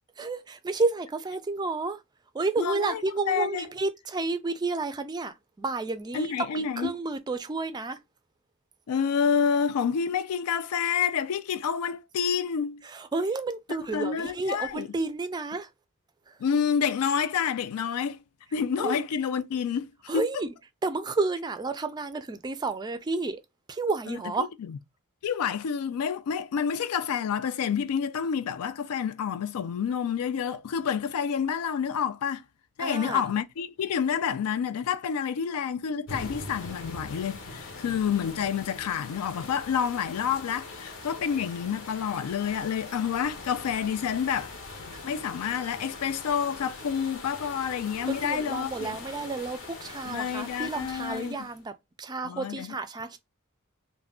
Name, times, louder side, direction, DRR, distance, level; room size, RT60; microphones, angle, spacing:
voice 1, 0.2-2.0 2.3-8.0 12.8-15.7 18.8-19.0 20.1-20.5 20.8-23.4 23.7-24.5 32.8-33.2 44.9-45.0 48.1-51.7 52.0-53.2, right 3 dB, 20° right, 0.3 m, -31 dB
voice 2, 2.6-3.0 3.3-3.7 6.1-6.9 8.9-12.8 13.9-14.9 16.4-18.2 18.5-20.4 24.1-24.2 24.6-24.8 25.2-32.4 32.8-44.5 45.0-49.0 50.1-51.4 52.2-52.7, left 7 dB, 85° left, 0.4 m, -28 dB
sound 1, 36.1-51.6, left 3 dB, 60° left, 0.8 m, -42 dB
2.4 x 2.1 x 3.5 m
head